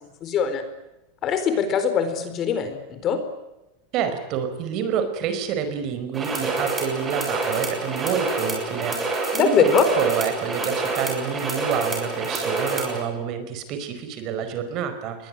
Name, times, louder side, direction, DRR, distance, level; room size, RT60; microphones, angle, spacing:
voice 1, 0.2-0.6 1.2-3.2 9.3-9.8, left 6 dB, 30° left, 9 dB, 4.3 m, -22 dB
voice 2, 3.9-15.3, right 8 dB, 40° right, 8 dB, 5.0 m, -28 dB
sound 1, 6.1-13.0, right 3 dB, 15° right, 7.1 m, -27 dB
28.5 x 22.0 x 9.2 m, 0.95 s
supercardioid pair, 155°, 0 cm